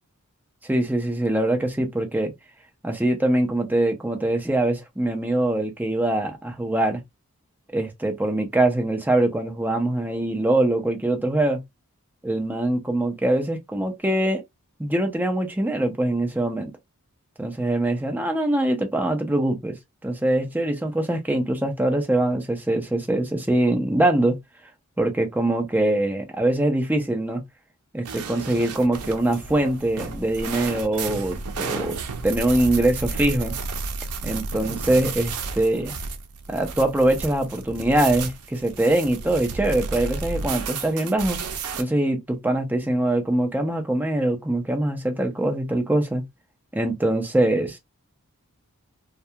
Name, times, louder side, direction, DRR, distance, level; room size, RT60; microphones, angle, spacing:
voice 1, 0.7-2.3 2.8-7.0 7.7-11.6 12.2-14.4 14.8-16.7 17.4-19.8 20.0-24.4 25.0-27.4 27.9-32.0 32.2-33.5 34.2-35.9 36.5-41.4 41.8-46.2 46.7-47.8, right 1 dB, 10° right, 0.5 m, -23 dB
sound 1, 28.1-41.8, right 4 dB, 75° right, 0.5 m, -32 dB
2.3 x 2.2 x 2.7 m
head